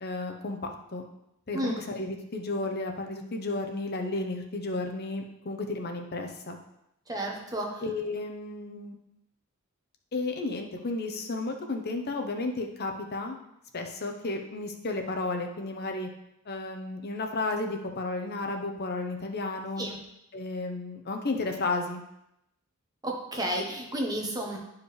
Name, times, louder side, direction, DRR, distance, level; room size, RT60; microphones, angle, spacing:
voice 1, 0.0-1.0 1.5-6.6 7.8-8.9 10.1-13.4 13.7-16.1 16.5-19.9 20.3-22.0, left 2 dB, 50° left, 4 dB, 0.9 m, -33 dB
voice 2, 7.1-7.8 19.8-20.0 23.0-24.6, right 1 dB, 20° right, 0 dB, 1.1 m, -32 dB
9.9 x 4.9 x 3.3 m, 0.83 s
head